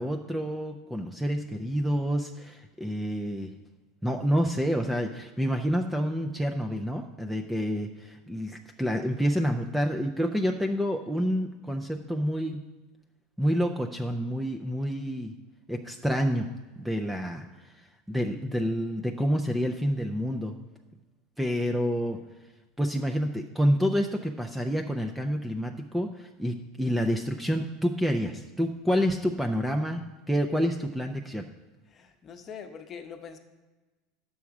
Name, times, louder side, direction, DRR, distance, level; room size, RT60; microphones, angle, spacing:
voice 1, 0.0-3.5 4.0-12.6 13.4-15.4 15.7-16.5 16.8-20.6 21.4-22.2 22.8-31.5, equal, ahead, 3 dB, 0.4 m, -28 dB
voice 2, 31.9-33.4, left 6 dB, 25° left, 6 dB, 0.9 m, -43 dB
10.0 x 7.1 x 4.8 m, 1.2 s
supercardioid pair, 155°, 0 cm